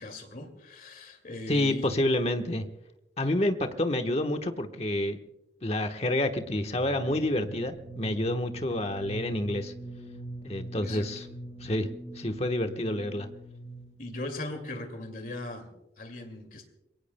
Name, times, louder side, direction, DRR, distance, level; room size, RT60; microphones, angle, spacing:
voice 1, 0.0-1.9 10.8-11.3 14.0-16.7, left 2 dB, 50° left, 6 dB, 2.3 m, -39 dB
voice 2, 1.5-2.6 3.2-5.2 5.6-9.7 10.4-11.3 11.6-11.9 12.2-13.3, left 1 dB, 35° left, 7 dB, 1.2 m, -28 dB
sound 1, 6.5-14.1, right 1 dB, 20° right, 5.8 m, -42 dB
27.5 x 22.0 x 2.2 m, 0.93 s
head